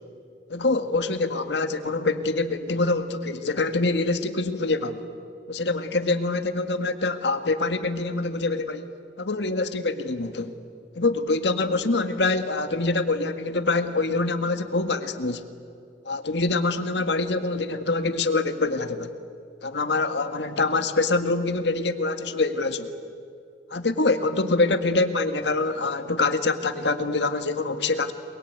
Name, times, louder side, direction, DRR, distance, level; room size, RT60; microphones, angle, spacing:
voice 1, 0.5-5.0 5.5-8.9 9.2-10.5 11.0-15.4 16.1-19.1 19.6-22.9 23.7-28.1, left 3 dB, 75° left, 8 dB, 1.9 m, -25 dB
29.0 x 22.0 x 9.4 m, 2.4 s
head